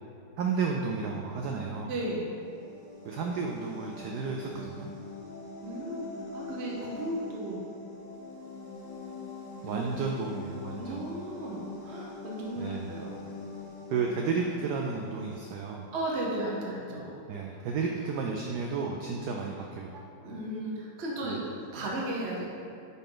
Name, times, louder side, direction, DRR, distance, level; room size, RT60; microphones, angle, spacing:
voice 1, 0.4-1.9 3.0-4.9 9.6-11.0 12.6-12.9 13.9-15.9 17.3-20.1 21.2-21.4, right 5 dB, 80° right, 0 dB, 0.9 m, -32 dB
voice 2, 1.9-2.3 5.6-7.6 9.6-10.0 10.7-13.2 15.9-17.2 20.2-21.4 21.7-22.5, right 1 dB, 55° right, -3 dB, 0.7 m, -35 dB
sound 1, 2.3-15.8, left 2 dB, 55° left, 0.4 m, -44 dB
9.1 x 4.2 x 3.8 m, 2.6 s
omnidirectional pair, 2.3 m